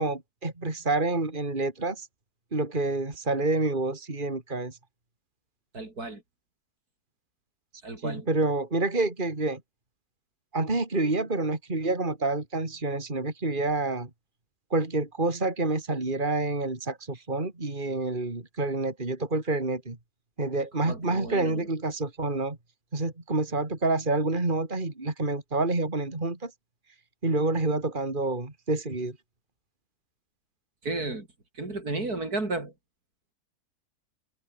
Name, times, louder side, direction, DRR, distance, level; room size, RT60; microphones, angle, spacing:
voice 1, 0.0-2.1 2.5-4.8 8.0-9.6 10.5-14.1 14.7-20.0 20.4-22.6 22.9-26.5 27.2-29.2, right 2 dB, 30° right, 3.5 m, -28 dB
voice 2, 5.7-6.2 7.8-8.3 20.9-21.7 30.8-31.3 31.6-32.7, right 2 dB, 65° right, 5.4 m, -33 dB
omnidirectional pair, 1.7 m